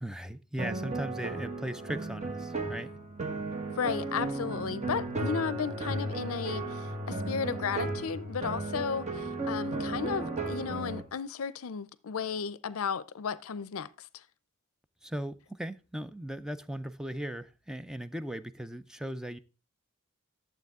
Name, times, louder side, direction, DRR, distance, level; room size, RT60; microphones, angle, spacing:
voice 1, 0.0-2.9 15.0-19.4, right 1 dB, 5° right, 0.4 m, -38 dB
sound 1, 0.6-11.0, right 2 dB, 30° right, 1.2 m, -35 dB
voice 2, 3.7-13.9, left 6 dB, 70° left, 0.5 m, -34 dB
11.5 x 7.3 x 3.6 m
head